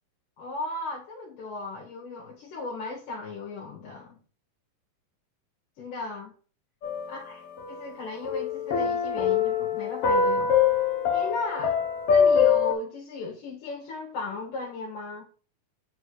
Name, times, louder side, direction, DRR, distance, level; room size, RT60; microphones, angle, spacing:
voice 1, 0.4-4.2 5.8-6.3 7.1-7.4 7.7-10.6 11.1-11.8 12.1-15.2, left 3 dB, 75° left, 3.2 m, -36 dB
sound 1, 6.8-7.9 8.2-12.7, left 6 dB, 60° left, 1.7 m, -24 dB
8.7 x 3.3 x 6.4 m
omnidirectional pair, 3.8 m